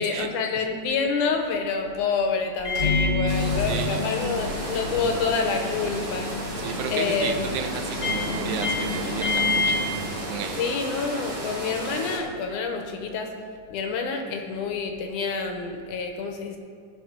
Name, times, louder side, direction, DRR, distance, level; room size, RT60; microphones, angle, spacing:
voice 1, 0.0-6.4 6.9-7.5 10.6-13.4 13.7-16.6, left 5 dB, 75° left, 4 dB, 2.3 m, -27 dB
Microwave oven, 2.6-10.8, left 3 dB, 30° left, 1.5 m, -28 dB
sound 1, 3.3-12.2, right 1 dB, 40° right, 1.9 m, -34 dB
voice 2, 3.7-4.0 6.6-9.9 10.3-10.6, right 7 dB, 85° right, 7 dB, 2.4 m, -33 dB
15.5 x 6.0 x 5.1 m, 2.2 s
omnidirectional pair, 3.8 m